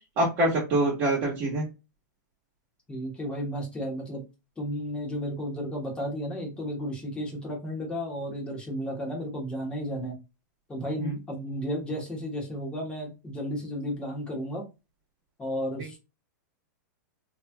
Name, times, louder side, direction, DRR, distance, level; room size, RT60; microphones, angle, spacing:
voice 1, 0.2-1.7 11.0-11.1, right 1 dB, 35° right, -4 dB, 1.2 m, -25 dB
voice 2, 2.9-4.2 4.6-10.1 10.7-14.6 15.4-16.0, equal, 10° left, -1 dB, 1.2 m, -33 dB
3.1 x 2.9 x 2.2 m, 0.27 s
hypercardioid pair, 150°, 10 cm